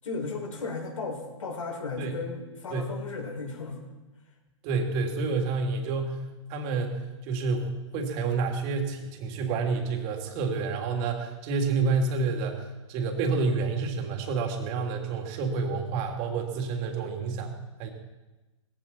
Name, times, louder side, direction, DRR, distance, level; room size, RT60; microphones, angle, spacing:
voice 1, 0.0-3.8, left 4 dB, 75° left, 0 dB, 6.7 m, -35 dB
voice 2, 4.6-6.2 6.5-17.5 17.8-17.9, right 4 dB, 35° right, 3 dB, 3.3 m, -29 dB
20.5 x 15.5 x 4.5 m, 1.1 s
hypercardioid pair, 130°, 17 cm